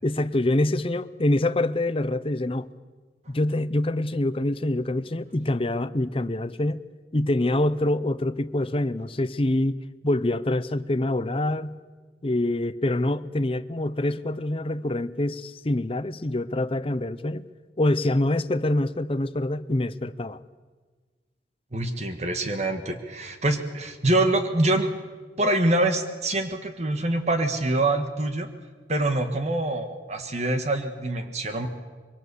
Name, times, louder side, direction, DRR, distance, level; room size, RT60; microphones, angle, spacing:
voice 1, 0.0-2.7 3.3-6.8 7.1-11.8 12.2-17.5 17.8-20.4, left 1 dB, 30° left, 0.7 m, -25 dB
voice 2, 21.7-24.9 25.4-28.5 28.9-31.7, right 2 dB, 40° right, 1.6 m, -25 dB
25.0 x 23.0 x 7.0 m
head